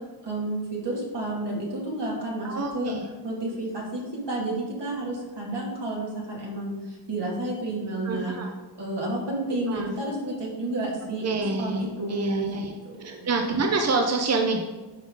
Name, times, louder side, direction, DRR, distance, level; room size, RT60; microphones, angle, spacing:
voice 1, 0.2-2.9 3.2-4.0 4.3-8.4 8.7-11.3 11.6-12.5 12.8-12.9, right 2 dB, 75° right, -3 dB, 2.3 m, -30 dB
voice 2, 2.4-3.0 8.0-8.5 9.7-9.9 11.2-12.7 13.0-14.7, right 3 dB, 40° right, 3 dB, 0.7 m, -27 dB
11.5 x 3.9 x 3.8 m, 1.2 s
wide cardioid pair, 125°, 41 cm